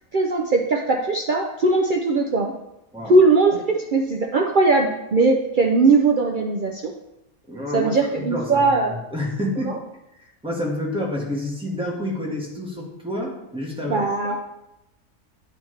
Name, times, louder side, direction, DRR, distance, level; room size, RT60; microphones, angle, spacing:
voice 1, 0.1-2.5 3.1-6.9 7.7-8.9 9.6-9.7 13.9-14.4, right 3 dB, 70° right, 1 dB, 0.4 m, -19 dB
voice 2, 7.5-8.6 8.9-9.8 10.4-14.4, left 1 dB, 5° right, -3 dB, 1.3 m, -28 dB
9.6 x 4.2 x 3.2 m, 0.89 s
omnidirectional pair, 1.5 m